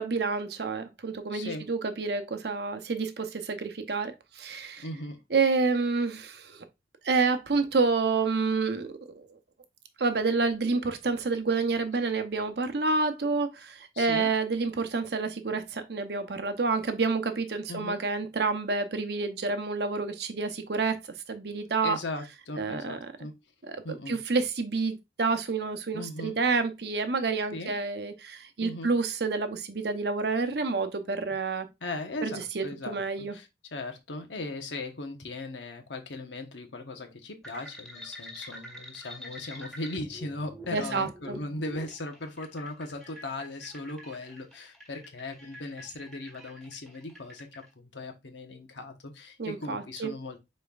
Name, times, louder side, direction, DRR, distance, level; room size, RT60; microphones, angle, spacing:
voice 1, 0.0-4.9 5.3-6.6 7.0-9.4 10.0-21.0 21.3-22.0 22.6-23.0 23.7-31.7 32.2-33.3 40.7-41.4 49.4-50.1, right 4 dB, 65° right, 0.7 m, -29 dB
voice 2, 1.3-1.7 4.8-5.2 13.9-14.3 17.7-18.0 21.8-23.3 23.8-24.2 25.9-26.4 27.5-27.7 28.6-28.9 31.8-33.0 33.3-50.4, left 2 dB, 80° left, 1.0 m, -38 dB
sound 1, 37.4-47.6, left 1 dB, 5° left, 1.7 m, -46 dB
5.2 x 4.3 x 2.4 m
head